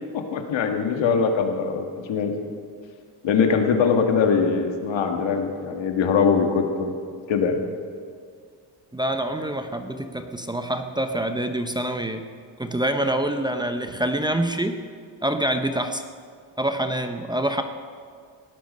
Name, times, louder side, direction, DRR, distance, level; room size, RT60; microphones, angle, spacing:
voice 1, 0.1-2.3 3.2-6.9 7.3-7.6, left 5 dB, 80° left, 4 dB, 1.8 m, -22 dB
voice 2, 8.9-12.2 12.6-14.8 15.2-16.0 16.6-17.6, right 1 dB, 10° right, 7 dB, 0.7 m, -26 dB
17.5 x 11.5 x 5.4 m, 2.1 s
cardioid pair, 120°, 44 cm